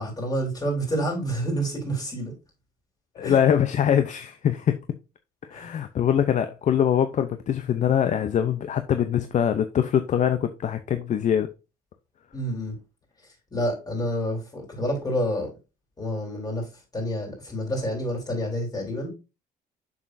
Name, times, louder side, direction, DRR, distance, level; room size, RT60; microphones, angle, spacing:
voice 1, 0.0-2.4 3.2-3.4 5.5-5.8 12.3-12.8 13.5-15.5 16.0-16.7 16.9-19.1, equal, 20° left, 3.9 m, -28 dB
voice 2, 3.2-4.8 5.5-11.5, left 9 dB, 45° left, 0.7 m, -23 dB
7.1 x 6.4 x 2.6 m
cardioid pair, 110°, 17 cm